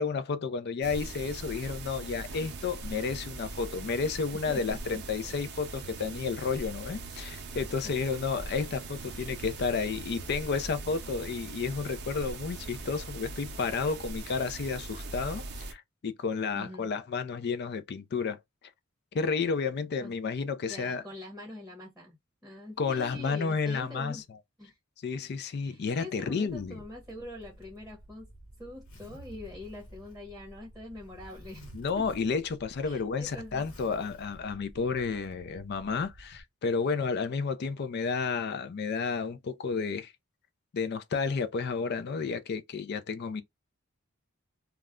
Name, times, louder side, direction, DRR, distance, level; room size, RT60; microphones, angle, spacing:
voice 1, 0.0-18.4 19.1-21.0 22.8-24.2 25.0-26.8 31.7-40.1 40.7-43.4, left 5 dB, 50° left, 0.4 m, -31 dB
sound 1, 0.8-15.7, right 3 dB, 50° right, 0.6 m, -41 dB
voice 2, 4.5-5.0 5.3-5.4 7.8-7.9 9.0-9.5 16.5-16.9 20.0-20.1 20.7-22.2 22.4-24.2 24.6-24.8 25.6-28.3 28.6-31.7 32.0-32.1 32.8-33.7, left 2 dB, 5° right, 0.8 m, -44 dB
Zipper (clothing), 26.5-36.4, right 1 dB, 85° left, 1.3 m, -51 dB
2.3 x 2.1 x 3.5 m
head